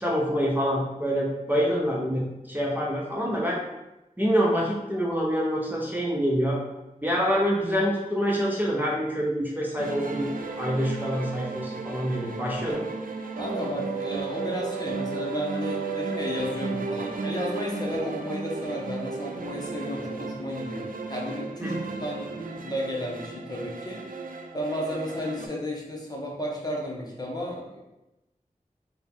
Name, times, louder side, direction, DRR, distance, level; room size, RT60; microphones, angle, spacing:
voice 1, 0.0-3.6 4.2-6.6 7.0-10.3 10.6-12.8 21.6-21.8, equal, 15° right, -4 dB, 0.7 m, -26 dB
sound 1, 9.8-25.5, right 4 dB, 75° right, 0.4 m, -34 dB
voice 2, 13.4-24.0 24.5-27.8, left 1 dB, 30° left, -3 dB, 1.0 m, -33 dB
4.0 x 2.3 x 3.6 m, 0.97 s
wide cardioid pair, 50°, 14 cm